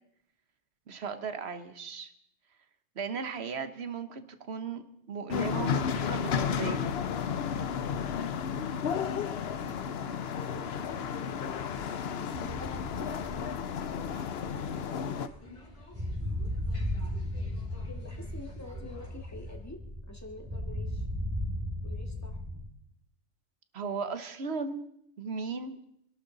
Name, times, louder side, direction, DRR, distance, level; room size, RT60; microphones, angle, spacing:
voice 1, 0.9-2.1 2.9-7.0 23.7-24.8 25.2-25.8, right 5 dB, 65° right, 10 dB, 1.3 m, -36 dB
sound 1, 5.3-15.3, left 7 dB, 65° left, 0.9 m, -32 dB
sound 2, 6.9-19.5, left 2 dB, 85° left, 4.2 m, -56 dB
voice 2, 9.9-11.9 12.2-13.2 17.7-21.1 21.8-22.4, left 2 dB, 15° left, 2 dB, 1.9 m, -48 dB
sound 3, 12.3-22.7, left 1 dB, 20° right, 2.3 m, -36 dB
26.0 x 12.0 x 4.0 m, 0.73 s
omnidirectional pair, 1.2 m